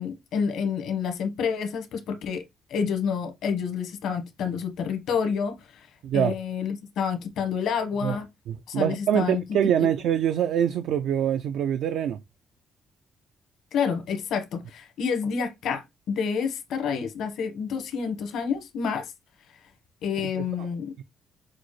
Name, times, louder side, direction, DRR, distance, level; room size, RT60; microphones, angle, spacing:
voice 1, 0.0-2.4 2.7-5.9 6.1-8.3 8.7-9.4 13.7-19.1 20.0-20.9, left 6 dB, 80° left, 1.1 m, -29 dB
voice 2, 6.0-6.3 8.0-8.2 8.5-12.2 20.2-20.3 20.6-20.7 21.0-21.1, right 9 dB, 80° right, 0.4 m, -24 dB
6.2 x 2.1 x 3.1 m
cardioid pair, 90°, 0 cm